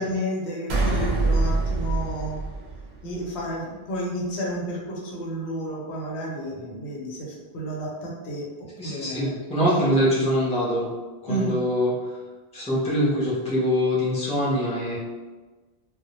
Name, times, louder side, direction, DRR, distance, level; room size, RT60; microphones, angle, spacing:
voice 1, 0.0-2.4 3.0-8.5 8.8-9.3 11.3-11.5, right 1 dB, 85° left, -3 dB, 0.9 m, -31 dB
sound 1, 0.7-3.3, right 2 dB, 90° right, 0.9 m, -24 dB
voice 2, 8.8-10.9 11.2-11.9 12.5-15.0, equal, 10° left, -7 dB, 0.5 m, -23 dB
2.1 x 2.1 x 2.8 m, 1.3 s
omnidirectional pair, 1.1 m